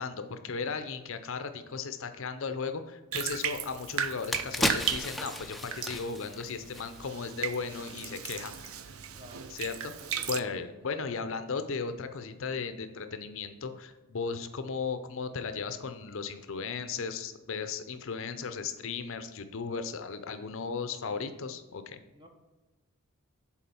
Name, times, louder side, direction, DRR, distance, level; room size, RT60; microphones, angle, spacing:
voice 1, 0.0-8.7 9.5-9.9 10.2-22.0, left 5 dB, 60° left, 9 dB, 0.6 m, -36 dB
Bathtub (filling or washing), 3.1-10.4, right 8 dB, 70° right, 0.5 m, -36 dB
sound 1, 3.6-3.7 4.1-7.4 7.7-7.8, left 1 dB, ahead, 0.4 m, -34 dB
voice 2, 9.1-9.6 10.0-10.5 10.8-11.3 22.1-22.3, equal, 20° right, 4 dB, 1.0 m, -52 dB
7.2 x 4.3 x 5.5 m, 1.2 s
head